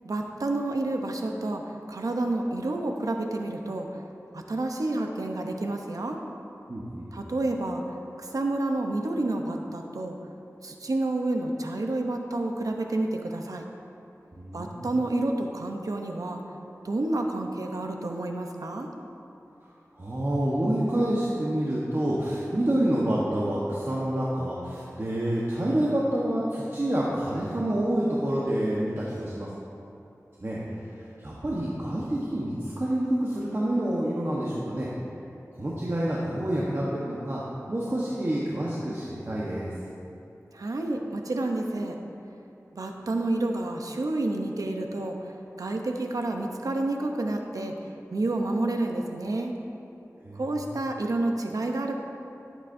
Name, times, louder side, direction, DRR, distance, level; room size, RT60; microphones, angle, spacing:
voice 1, 0.0-1.6 1.9-3.9 4.3-6.2 7.1-7.8 8.2-10.2 10.6-13.6 14.5-16.4 16.8-18.9 40.5-42.0 42.7-45.2 45.6-47.7 48.1-49.5 50.3-52.0, right 2 dB, 85° right, 3 dB, 0.8 m, -29 dB
voice 2, 6.7-7.1 14.4-14.9 19.6-19.7 20.0-29.5 30.4-30.9 31.2-34.9 35.5-37.4 37.7-39.7 50.2-50.4, right 1 dB, 45° right, -6 dB, 1.1 m, -28 dB
14.0 x 8.3 x 2.7 m, 2.8 s
wide cardioid pair, 60°, 6 cm